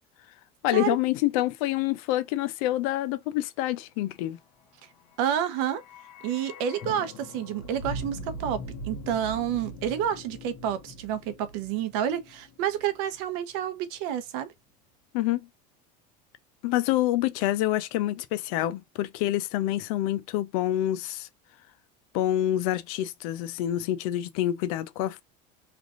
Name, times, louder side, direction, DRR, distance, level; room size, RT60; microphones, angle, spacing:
voice 1, 0.6-4.4 15.1-15.5 16.6-21.3 22.1-25.2, left 14 dB, 70° left, 0.6 m, -27 dB
sound 1, 5.1-13.2 13.5-13.6, equal, 50° left, 1.1 m, -41 dB
voice 2, 5.2-5.8 6.2-14.5, right 9 dB, 65° right, 0.8 m, -29 dB
3.4 x 2.5 x 2.4 m
cardioid pair, 165°, 19 cm